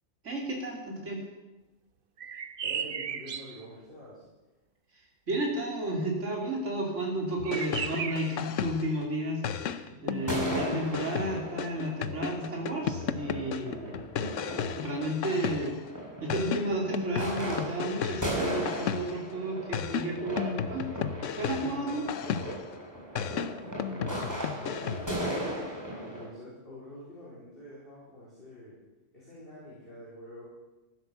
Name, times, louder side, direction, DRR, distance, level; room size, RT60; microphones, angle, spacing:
voice 1, 0.2-1.2 5.3-14.0 14.8-15.7 16.2-20.9 21.4-22.1, right 1 dB, 70° right, -1 dB, 3.3 m, -32 dB
voice 2, 2.2-4.2 23.1-25.5 26.0-28.8 29.1-30.4, equal, 45° left, -9 dB, 4.6 m, -47 dB
sound 1, 2.2-3.6 7.4-8.4, right 7 dB, 50° right, 0.9 m, -35 dB
sound 2, 7.4-9.0 9.4-15.9 16.3-19.3 19.7-22.7 23.2-25.2, left 8 dB, 85° left, 1.1 m, -34 dB
sound 3, 10.2-26.2, equal, 15° right, 4.9 m, -37 dB
14.5 x 11.5 x 6.9 m, 1.1 s
omnidirectional pair, 1.3 m